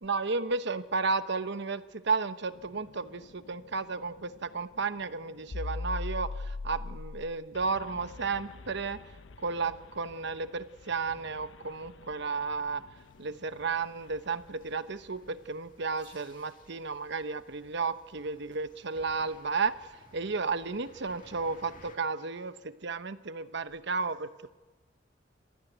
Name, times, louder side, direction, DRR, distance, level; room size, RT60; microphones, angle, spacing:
voice 1, 0.0-9.1 9.4-24.5, right 4 dB, 65° right, 12 dB, 1.0 m, -33 dB
sound 1, 2.5-15.3, left 3 dB, 75° left, 0.6 m, -43 dB
sound 2, 13.0-22.0, left 2 dB, 45° left, 2.4 m, -59 dB
sound 3, 18.7-23.0, right 2 dB, 25° right, 4.5 m, -63 dB
26.5 x 14.0 x 9.2 m, 1.3 s
head